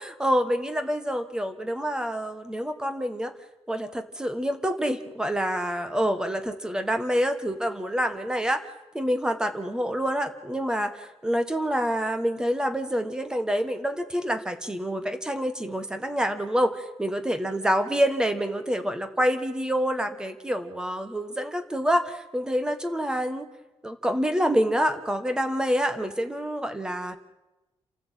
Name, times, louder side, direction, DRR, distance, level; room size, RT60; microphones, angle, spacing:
voice 1, 0.0-3.3 3.7-8.6 8.9-23.5 23.8-27.2, equal, 5° right, 10 dB, 1.5 m, -27 dB
28.5 x 14.0 x 9.2 m, 1.0 s
wide cardioid pair, 170°, 11 cm